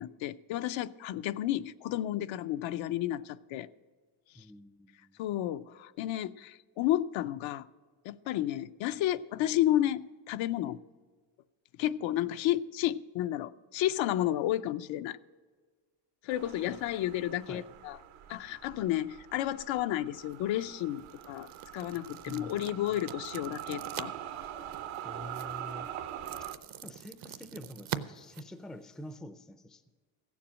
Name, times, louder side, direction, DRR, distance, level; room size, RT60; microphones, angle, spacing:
voice 1, 0.0-3.7 4.3-4.4 5.2-7.7 8.0-10.8 11.8-15.2 16.2-18.0 18.3-21.5 21.7-24.1, left 13 dB, 75° left, 0.6 m, -32 dB
voice 2, 4.3-5.2 16.7-16.8 17.5-17.7 22.2-22.7 25.0-25.9 26.8-29.8, left 1 dB, ahead, 0.3 m, -46 dB
sound 1, 16.3-26.5, right 11 dB, 85° right, 1.0 m, -43 dB
sound 2, 20.1-29.2, right 10 dB, 45° right, 0.6 m, -45 dB
15.5 x 7.3 x 6.2 m
cardioid pair, 140°, 46 cm